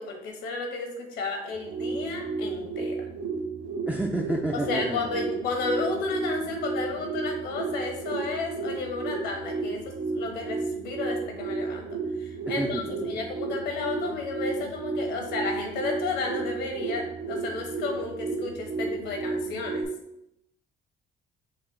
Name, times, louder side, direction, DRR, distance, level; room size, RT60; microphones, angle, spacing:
voice 1, 0.0-3.0 4.5-10.6 10.8-11.9 12.2-19.9, left 3 dB, 85° left, 3 dB, 1.1 m, -32 dB
sound 1, 1.5-19.8, right 3 dB, 85° right, 0.9 m, -32 dB
voice 2, 3.9-5.3 12.5-13.2, right 2 dB, 10° right, 0 dB, 0.4 m, -31 dB
5.8 x 2.3 x 3.7 m, 0.82 s
cardioid pair, 110°, 17 cm